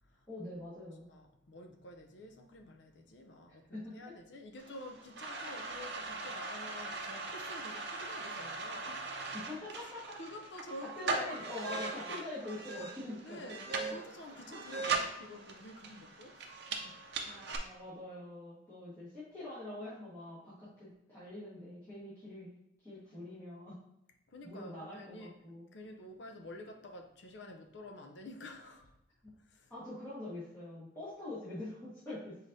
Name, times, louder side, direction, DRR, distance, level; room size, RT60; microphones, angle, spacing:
voice 1, 0.3-1.1 3.7-4.0 9.3-10.2 10.8-14.0 17.2-22.5 22.8-23.8 24.4-25.6 29.2-29.3 29.7-32.4, left 1 dB, 15° left, -13 dB, 1.4 m, -44 dB
voice 2, 1.0-9.3 10.1-11.4 13.2-17.0 24.3-25.3 25.7-29.0 29.2-29.7, left 1 dB, 65° left, 4 dB, 0.6 m, -50 dB
sound 1, 4.6-17.6, right 4 dB, 55° right, 0.6 m, -40 dB
5.1 x 3.9 x 2.7 m, 0.85 s
head